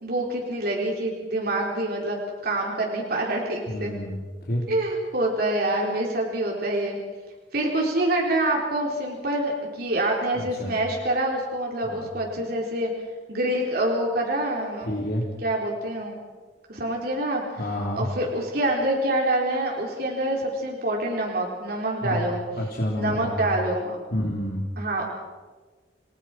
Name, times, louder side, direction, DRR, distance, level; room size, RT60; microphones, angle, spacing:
voice 1, 0.0-3.9 4.7-7.0 7.5-12.9 13.3-14.9 15.4-16.2 16.7-17.4 17.9-22.4 23.0-24.0 24.8-25.1, right 1 dB, 60° right, -1 dB, 4.2 m, -26 dB
voice 2, 3.7-4.7 10.3-10.8 11.8-12.1 14.9-15.2 17.6-18.1 22.0-23.5 24.1-24.6, equal, 55° left, -3 dB, 3.7 m, -29 dB
30.0 x 19.5 x 6.2 m, 1.3 s
head